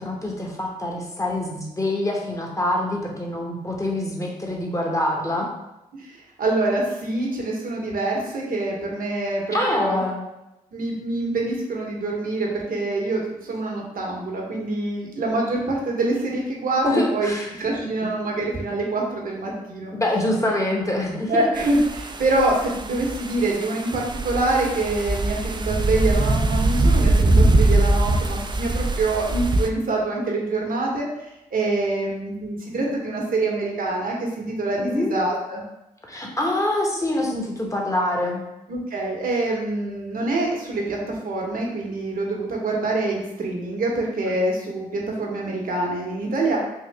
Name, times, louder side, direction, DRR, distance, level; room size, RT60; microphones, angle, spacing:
voice 1, 0.0-5.5 9.5-10.3 16.8-17.5 19.9-21.4 34.8-35.1 36.1-38.4, left 1 dB, 20° left, -1 dB, 1.1 m, -25 dB
voice 2, 6.0-10.0 10.7-17.3 17.6-19.9 21.3-31.1 31.5-35.6 38.7-46.6, right 2 dB, 65° right, -1 dB, 1.0 m, -25 dB
sound 1, 21.6-29.7, right 2 dB, 30° right, 0.4 m, -22 dB
3.7 x 2.6 x 3.3 m, 0.91 s
supercardioid pair, 40°, 16 cm